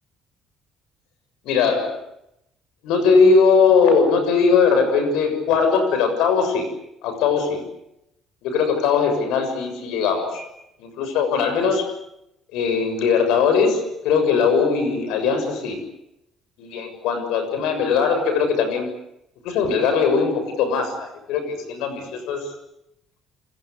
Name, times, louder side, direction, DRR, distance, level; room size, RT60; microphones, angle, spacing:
voice 1, 1.5-2.0 2.8-6.7 7.0-7.6 8.4-10.5 10.8-11.9 12.5-15.8 16.6-18.9 19.4-22.5, left 5 dB, 85° left, 8 dB, 7.0 m, -20 dB
29.0 x 21.0 x 8.3 m, 0.83 s
supercardioid pair, 85°, 0 cm